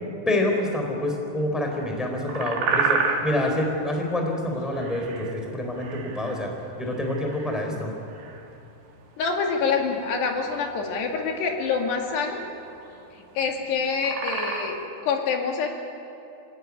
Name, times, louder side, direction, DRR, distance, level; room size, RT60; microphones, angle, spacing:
voice 1, 0.3-6.5 6.8-7.9, left 1 dB, ahead, 2 dB, 3.3 m, -27 dB
sound 1, 1.9-14.8, right 5 dB, 75° right, 4.2 m, -31 dB
voice 2, 9.2-12.4 13.4-15.7, left 5 dB, 80° left, 2 dB, 4.3 m, -26 dB
27.0 x 17.5 x 9.6 m, 2.7 s
omnidirectional pair, 4.8 m